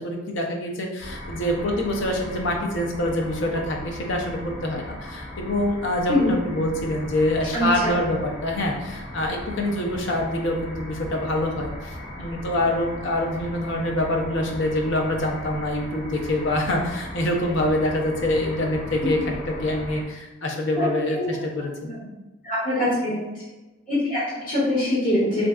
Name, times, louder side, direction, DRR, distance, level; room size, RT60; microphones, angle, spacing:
voice 1, 0.0-21.7, left 1 dB, 55° left, 1 dB, 0.5 m, -25 dB
sound 1, 1.0-20.0, left 1 dB, 75° left, 1.1 m, -37 dB
voice 2, 7.5-7.9 20.7-20.9 21.1-21.2 21.8-22.0 22.4-23.2 23.9-25.5, left 1 dB, 40° left, -10 dB, 1.4 m, -23 dB
3.3 x 2.6 x 2.3 m, 1.1 s
head